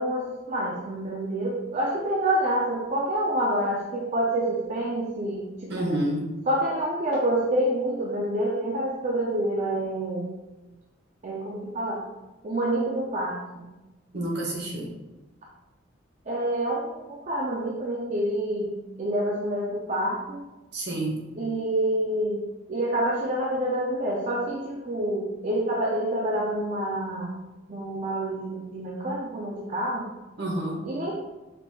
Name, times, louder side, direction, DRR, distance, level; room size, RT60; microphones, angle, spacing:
voice 1, 0.0-6.0 6.5-10.3 11.2-12.0 12.4-13.6 16.3-20.4 21.4-22.4 22.7-27.4 27.7-30.1 30.8-31.1, right 1 dB, 35° right, -3 dB, 0.4 m, -27 dB
voice 2, 5.7-6.3 14.1-14.9 20.7-21.2 30.4-30.8, right 1 dB, 55° right, -2 dB, 0.9 m, -29 dB
5.0 x 2.9 x 2.2 m, 1.1 s
head